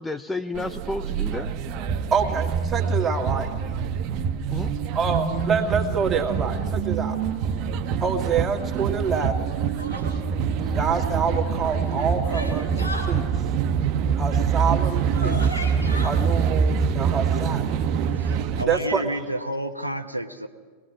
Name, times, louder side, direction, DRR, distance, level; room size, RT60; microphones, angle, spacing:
voice 1, 0.0-1.5 4.5-4.7 10.6-10.9, left 2 dB, 10° left, 10 dB, 0.7 m, -31 dB
sound 1, 0.5-18.6, right 6 dB, 40° right, 1.1 m, -25 dB
voice 2, 2.1-3.5 4.9-7.2 8.0-9.5 10.7-13.3 14.2-15.5 16.0-17.6 18.7-19.1, right 6 dB, 20° right, 0 dB, 2.5 m, -26 dB
sound 2, 9.8-10.2 11.6-13.1 14.7-14.8 15.1-16.1, left 1 dB, 85° left, 4.3 m, -34 dB
voice 3, 18.2-20.5, right 1 dB, 90° right, 6 dB, 1.0 m, -30 dB
23.0 x 19.0 x 6.2 m, 1.5 s
figure-of-eight pair, 90°, 0 cm